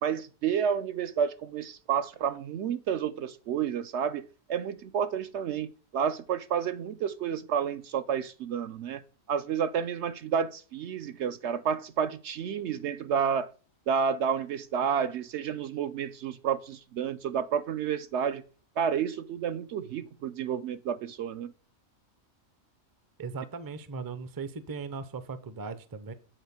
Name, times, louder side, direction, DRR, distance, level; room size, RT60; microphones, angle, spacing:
voice 1, 0.0-9.0 9.3-13.5 13.9-18.4 18.8-21.5, right 7 dB, 65° right, 0.8 m, -30 dB
voice 2, 23.2-26.1, right 4 dB, 25° right, 0.5 m, -38 dB
8.7 x 4.3 x 6.9 m
omnidirectional pair, 1.4 m